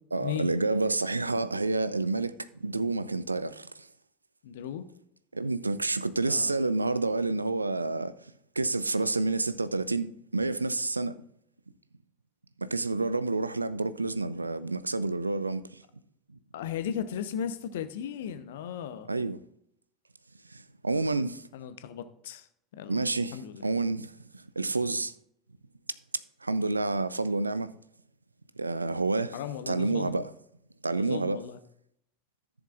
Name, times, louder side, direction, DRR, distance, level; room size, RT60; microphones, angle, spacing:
voice 1, 0.1-3.9 5.3-8.3 8.6-11.2 12.6-15.8 16.3-16.4 19.1-19.4 20.5-21.5 22.9-25.1 26.4-27.7 28.6-29.4 29.7-30.3 30.8-31.4, right 3 dB, 85° right, 0.4 m, -29 dB
voice 2, 4.4-4.9 6.3-6.6 16.5-19.1 21.5-22.5 22.7-23.0 23.3-23.6 29.3-30.1 30.9-31.6, left 9 dB, 65° left, 0.8 m, -36 dB
13.5 x 7.0 x 2.4 m
figure-of-eight pair, 70°, 0 cm